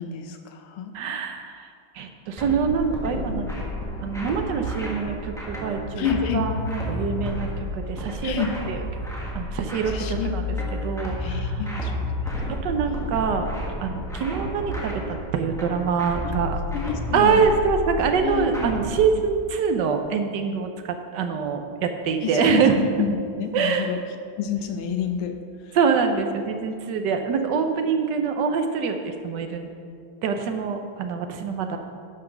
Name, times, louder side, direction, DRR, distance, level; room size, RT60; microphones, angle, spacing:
voice 1, 0.0-0.9 6.0-6.5 8.2-8.6 9.9-10.3 11.2-11.9 16.2-16.3 16.7-17.4 18.2-19.0 22.2-24.0 24.4-25.4, left 7 dB, 90° left, 7 dB, 1.7 m, -28 dB
voice 2, 0.9-1.7 2.0-3.4 4.0-6.1 6.3-8.3 8.7-8.8 9.3-10.4 10.8-11.6 12.6-13.5 13.8-16.6 17.1-20.7 21.1-22.8 23.5-23.9 25.7-29.7 30.2-31.8, right 6 dB, 65° right, 6 dB, 1.2 m, -24 dB
sound 1, 2.4-19.0, left 1 dB, ahead, 1.1 m, -31 dB
10.0 x 5.8 x 5.9 m, 2.3 s
omnidirectional pair, 2.3 m